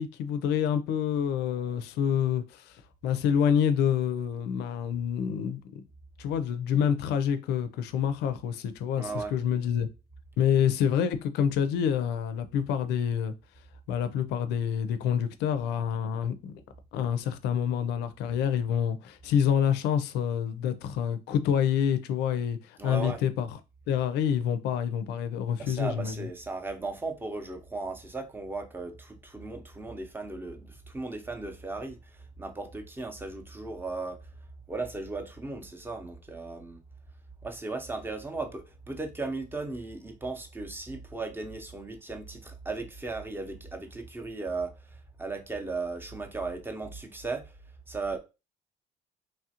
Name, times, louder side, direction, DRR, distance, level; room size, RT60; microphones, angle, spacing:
voice 1, 0.0-2.7 3.0-5.8 6.2-9.9 10.4-13.3 13.9-16.5 16.9-23.5 23.9-26.3, left 8 dB, 80° left, 0.4 m, -27 dB
voice 2, 9.0-9.4 22.8-23.2 25.6-34.2 34.7-36.8 37.4-47.6 47.9-48.2, right 3 dB, 10° right, 0.6 m, -36 dB
3.1 x 2.4 x 2.8 m
cardioid pair, 110°, 17 cm